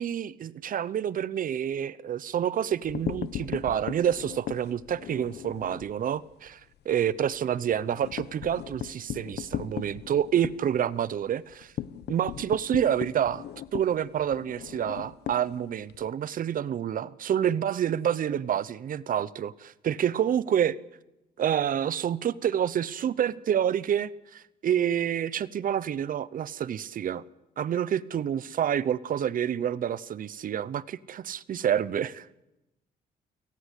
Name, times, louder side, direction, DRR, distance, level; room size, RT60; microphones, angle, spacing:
voice 1, 0.0-6.6 6.8-11.7 12.1-13.4 13.7-20.8 21.4-27.2 27.6-32.3, right 9 dB, 55° right, 0.8 m, -28 dB
sound 1, 2.7-5.9 6.3-6.5 6.8-6.9 7.2-16.1, left 11 dB, 75° left, 1.1 m, -38 dB
29.5 x 18.0 x 8.3 m
cardioid pair, 115°, 17 cm